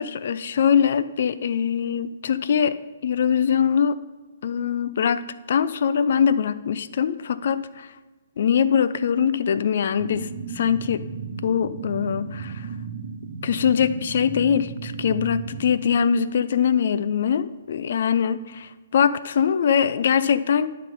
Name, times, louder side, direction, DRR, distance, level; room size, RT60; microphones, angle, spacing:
voice 1, 0.0-2.8 3.0-4.0 4.4-7.9 8.4-11.1 11.4-12.7 13.4-20.7, left 7 dB, 55° left, 15 dB, 0.4 m, -22 dB
sound 1, 10.0-15.8, right 5 dB, 55° right, 1.1 m, -35 dB
11.0 x 3.7 x 5.2 m, 1.3 s
figure-of-eight pair, 125°, 0 cm